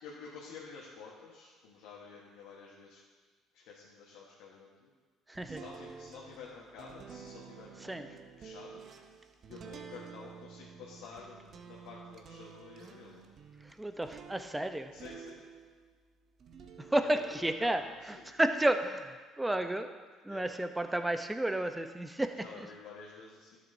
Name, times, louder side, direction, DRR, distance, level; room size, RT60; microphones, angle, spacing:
voice 1, 0.0-3.0 3.5-4.9 5.5-8.8 9.5-13.2 14.9-15.4 17.0-17.3 17.6-18.3 20.3-20.5 22.4-23.6, left 5 dB, 80° left, -5 dB, 1.3 m, -50 dB
voice 2, 5.3-5.6 7.8-8.1 13.6-14.9 16.8-19.9 20.2-22.7, right 1 dB, 10° right, 8 dB, 0.7 m, -32 dB
sound 1, 5.4-15.9 16.4-18.7, right 6 dB, 50° right, 0.8 m, -51 dB
12.0 x 7.3 x 2.7 m, 1.4 s
supercardioid pair, 70°, 0 cm